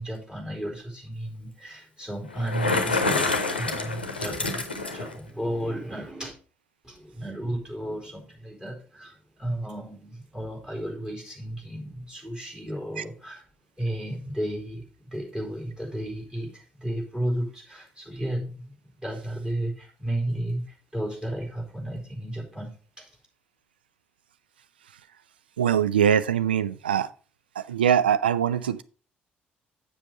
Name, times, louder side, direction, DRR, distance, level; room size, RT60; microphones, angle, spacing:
voice 1, 0.0-6.3 6.8-13.5 13.8-23.1, right 1 dB, 10° right, 4.1 m, -33 dB
Bicycle, 2.3-5.2, left 3 dB, 90° left, 0.8 m, -27 dB
voice 2, 25.6-27.1 27.6-28.8, right 9 dB, 80° right, 0.4 m, -22 dB
7.4 x 6.7 x 4.6 m
figure-of-eight pair, 45°, 5 cm